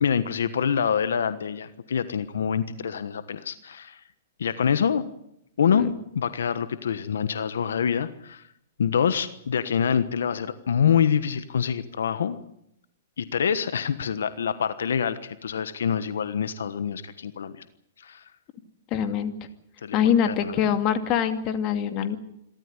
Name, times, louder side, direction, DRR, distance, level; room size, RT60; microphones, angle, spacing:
voice 1, 0.0-4.0 4.4-5.0 5.6-5.9 6.1-8.4 8.8-12.4 13.2-17.6 18.0-18.2 19.8-20.5, left 7 dB, 85° left, 13 dB, 1.3 m, -26 dB
voice 2, 18.9-19.3 19.9-22.2, left 8 dB, 35° left, 8 dB, 2.5 m, -24 dB
27.0 x 13.5 x 9.9 m, 0.77 s
hypercardioid pair, 145°, 0 cm